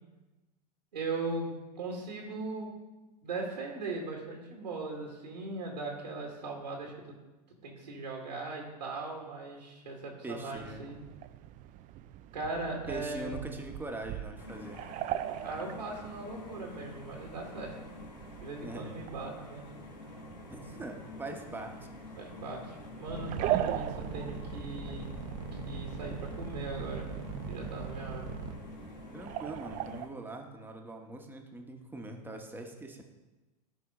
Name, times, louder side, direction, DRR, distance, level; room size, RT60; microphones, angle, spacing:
voice 1, 0.9-2.7 3.2-7.1 7.6-11.0 12.3-13.4 15.4-17.8 18.4-19.6 22.2-25.1 25.7-27.1 27.5-28.3, right 3 dB, 90° right, 0 dB, 2.0 m, -39 dB
voice 2, 10.2-10.9 12.9-14.8 18.6-19.0 20.5-21.8 29.1-33.0, right 2 dB, 10° right, 2 dB, 1.3 m, -42 dB
sound 1, 10.5-30.1, right 12 dB, 40° right, 0.5 m, -41 dB
sound 2, 14.4-30.1, left 3 dB, 85° left, 1.6 m, -48 dB
sound 3, 23.1-28.5, right 5 dB, 60° right, 1.1 m, -40 dB
13.0 x 5.0 x 3.8 m, 1.1 s
hypercardioid pair, 100°, 21 cm